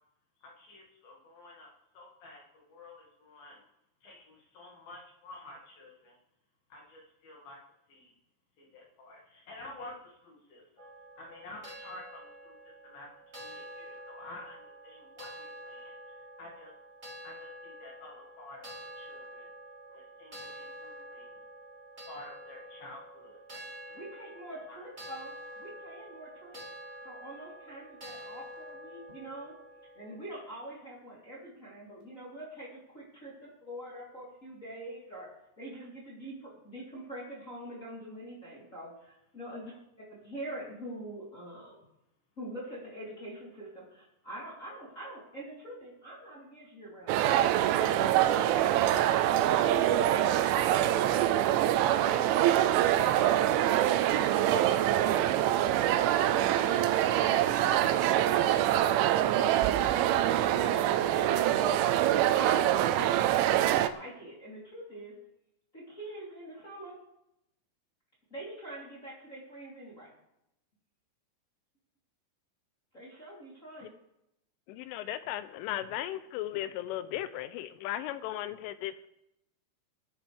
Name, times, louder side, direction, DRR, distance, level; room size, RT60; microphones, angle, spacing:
voice 1, 0.4-1.7 1.9-3.6 4.0-6.2 6.7-7.6 7.9-8.1 8.6-10.9 11.2-13.1 13.3-16.7 17.2-19.5 19.9-21.4 22.0-23.4 24.7-24.8 39.5-39.6 52.3-52.6, left 2 dB, 55° left, -1 dB, 3.3 m, -50 dB
sound 1, 10.8-30.2, equal, 25° right, 1.4 m, -48 dB
voice 2, 23.9-26.7 27.0-29.6 29.9-39.7 40.1-41.9 42.4-47.4 58.7-61.6 62.3-63.4 63.8-65.2 65.7-67.0 68.3-70.1 72.9-73.9, right 1 dB, 20° left, -6 dB, 2.9 m, -44 dB
sound 2, 47.1-63.9, right 12 dB, 85° right, 2.7 m, -25 dB
voice 3, 74.7-79.1, left 13 dB, 80° left, 12 dB, 3.0 m, -36 dB
21.5 x 10.5 x 3.4 m, 0.83 s
omnidirectional pair, 5.8 m